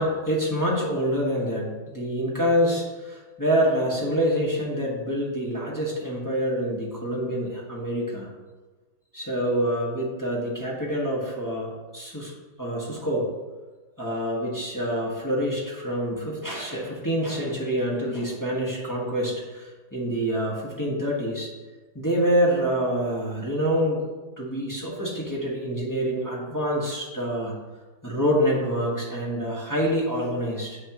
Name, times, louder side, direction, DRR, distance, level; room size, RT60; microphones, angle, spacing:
voice 1, 0.0-8.3 9.1-12.3 12.6-13.2 14.0-21.5 21.9-24.0 24.4-27.5 28.0-30.8, equal, 10° left, -5 dB, 1.3 m, -26 dB
9.5 x 6.1 x 3.1 m, 1.3 s
omnidirectional pair, 2.1 m